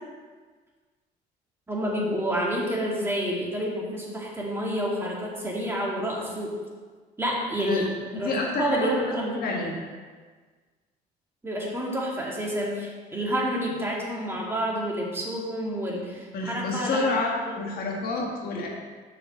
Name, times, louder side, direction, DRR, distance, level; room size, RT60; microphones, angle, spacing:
voice 1, 1.7-6.5 7.2-7.9 8.2-8.3 8.6-9.6 11.4-17.0 17.5-17.6, equal, 15° right, -4 dB, 2.0 m, -29 dB
voice 2, 8.1-9.8 16.3-18.7, left 3 dB, 65° left, -1 dB, 1.7 m, -29 dB
6.3 x 5.3 x 6.8 m, 1.5 s
cardioid pair, 110°, 17 cm